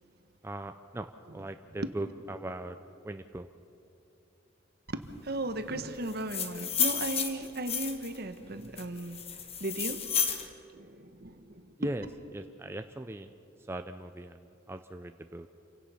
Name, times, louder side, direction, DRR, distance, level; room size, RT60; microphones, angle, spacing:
voice 1, 0.4-2.8 3.0-3.5 11.8-12.1 12.3-13.3 13.7-15.5, right 1 dB, 15° right, 7 dB, 0.4 m, -39 dB
voice 2, 4.9-9.2 9.6-10.0 10.7-11.7, right 2 dB, 55° right, 9 dB, 1.2 m, -36 dB
sound 1, 6.1-8.2 8.8-10.5, left 7 dB, 30° left, 1.3 m, -31 dB
28.0 x 17.0 x 5.7 m, 2.7 s
head